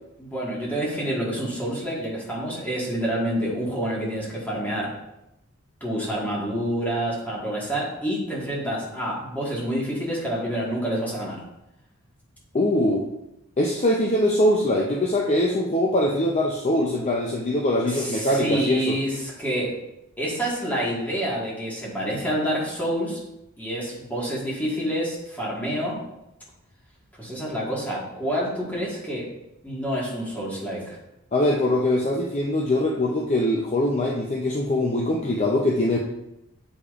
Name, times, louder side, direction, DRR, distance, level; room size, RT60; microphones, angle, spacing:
voice 1, 0.2-4.9 5.8-11.4 17.8-19.7 20.2-23.2 23.6-26.0 27.2-29.3 29.6-31.0, equal, 10° left, -5 dB, 1.5 m, -28 dB
voice 2, 12.5-13.0 13.6-19.0 31.3-36.0, left 1 dB, 30° left, -1 dB, 0.5 m, -22 dB
8.3 x 4.9 x 2.4 m, 0.89 s
head